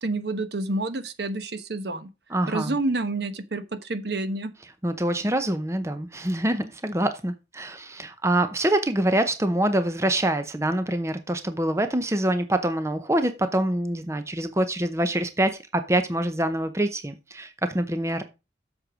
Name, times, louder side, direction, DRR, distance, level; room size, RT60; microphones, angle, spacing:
voice 1, 0.0-2.1 2.5-4.5, right 2 dB, 65° right, 1.0 m, -29 dB
voice 2, 2.3-2.8 4.8-18.2, right 1 dB, 15° right, 0.7 m, -25 dB
8.0 x 6.5 x 5.0 m
head